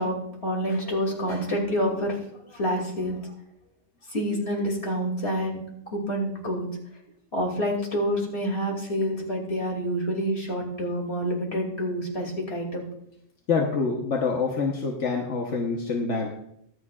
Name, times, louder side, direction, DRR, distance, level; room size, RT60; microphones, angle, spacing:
voice 1, 0.0-3.3 4.1-5.6 5.9-6.7 7.3-12.8, equal, 65° left, 0 dB, 3.0 m, -28 dB
voice 2, 13.5-16.3, left 4 dB, 90° left, 0 dB, 1.5 m, -26 dB
23.0 x 7.8 x 2.4 m, 0.74 s
omnidirectional pair, 1.2 m